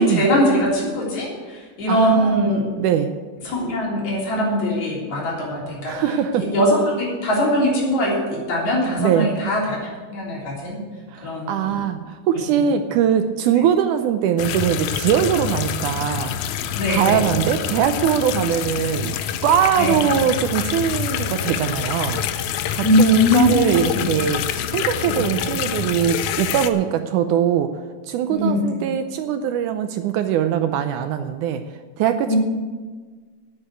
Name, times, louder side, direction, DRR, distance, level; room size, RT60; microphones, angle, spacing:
voice 1, 0.0-2.7 3.4-6.0 6.3-9.8 10.1-10.8 11.2-11.7 16.8-17.2 19.8-19.9 22.8-23.6 23.9-24.0 25.0-25.2 28.3-28.6 32.3-32.4, equal, 55° left, -4 dB, 4.7 m, -21 dB
voice 2, 1.9-2.5 2.8-3.1 5.9-6.5 9.0-9.3 11.1-16.3 16.9-19.2 19.4-22.2 22.7-24.4 24.7-27.7 28.1-31.6 32.0-32.4, right 9 dB, 80° right, 8 dB, 1.8 m, -21 dB
sound 1, 14.4-26.7, left 9 dB, 90° left, 1.7 m, -26 dB
10.0 x 8.6 x 8.2 m, 1.5 s
omnidirectional pair, 4.1 m